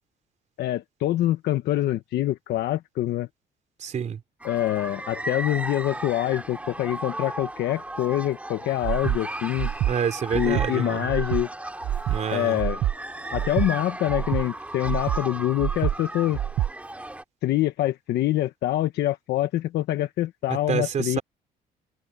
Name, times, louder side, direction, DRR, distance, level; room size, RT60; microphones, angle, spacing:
voice 1, 0.6-3.3 4.4-9.7 10.3-11.5 12.3-12.8 13.3-16.4 17.4-21.2, left 14 dB, 75° left, 1.4 m, -25 dB
voice 2, 3.8-4.2 9.9-11.1 12.1-12.6 20.5-21.2, right 7 dB, 45° right, 3.9 m, -28 dB
sound 1, 4.4-17.2, right 1 dB, 10° right, 2.9 m, -36 dB
Breathing, 8.8-9.2 9.6-9.9 10.3-10.7 11.1-11.4 11.8-12.2 12.6-12.9 13.3-13.7 14.1-14.4 14.8-15.2 15.6-15.9 16.3-16.7, right 12 dB, 60° right, 1.3 m, -26 dB
cardioid pair, 110°, 17 cm